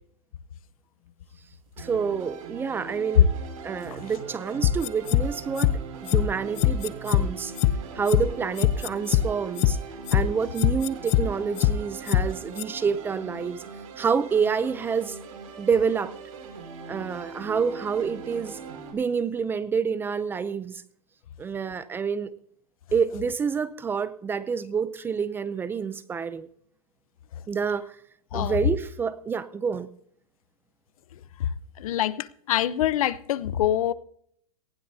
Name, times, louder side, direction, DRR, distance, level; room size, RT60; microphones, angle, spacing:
voice 1, 1.8-3.3 3.6-5.7 6.0-7.5 7.9-9.8 10.1-13.6 14.0-15.2 15.6-16.1 16.9-18.6 18.9-20.8 21.4-22.3 22.9-26.5 27.5-28.0 28.3-29.9, right 6 dB, 10° right, 0.5 m, -28 dB
sound 1, 1.8-18.9, right 5 dB, 65° right, 5.6 m, -41 dB
sound 2, 4.6-5.2 5.6-5.7 6.1-6.2 6.6-7.2 7.6-7.7 8.1-8.2 8.6-9.2 9.6-9.7 10.1-10.2 10.6-11.2 11.6-11.7 12.1-12.2 12.6-12.7, left 15 dB, 35° left, 0.6 m, -21 dB
voice 2, 31.8-33.9, left 12 dB, 70° left, 0.9 m, -25 dB
19.0 x 16.0 x 2.8 m
supercardioid pair, 155°, 19 cm